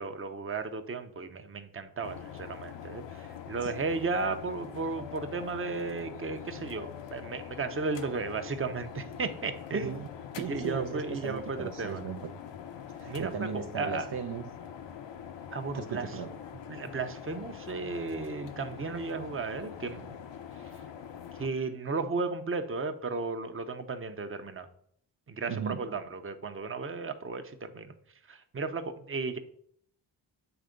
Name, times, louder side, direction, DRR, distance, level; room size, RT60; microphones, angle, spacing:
voice 1, 0.0-10.0 10.5-12.0 13.1-13.5 13.8-14.1 15.5-16.1 16.7-20.2 21.4-24.7 25.3-27.9 28.3-29.4, right 4 dB, 30° right, 0.8 m, -34 dB
sound 1, 2.0-21.5, left 8 dB, 80° left, 0.8 m, -44 dB
voice 2, 9.7-10.1 10.3-12.3 12.9-14.5 15.7-16.4 25.5-25.9, right 7 dB, 65° right, 0.7 m, -37 dB
8.1 x 3.5 x 5.1 m
cardioid pair, 65°, 43 cm